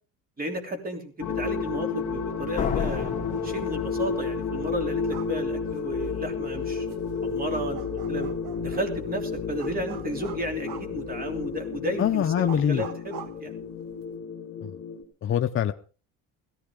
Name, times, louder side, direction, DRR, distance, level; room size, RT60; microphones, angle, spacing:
voice 1, 0.4-3.1 3.4-8.3 8.6-13.6, equal, 25° right, 4 dB, 3.2 m, -33 dB
sound 1, 1.2-15.0, left 5 dB, 55° left, 3.0 m, -31 dB
Slam, 2.6-4.5, left 7 dB, 20° left, 2.4 m, -31 dB
sound 2, 5.0-14.1, right 7 dB, 70° right, 1.4 m, -46 dB
voice 2, 12.0-12.8 14.6-14.7 15.2-15.7, left 9 dB, 40° left, 7 dB, 0.6 m, -24 dB
17.0 x 15.0 x 3.7 m, 0.37 s
cardioid pair, 140°, 34 cm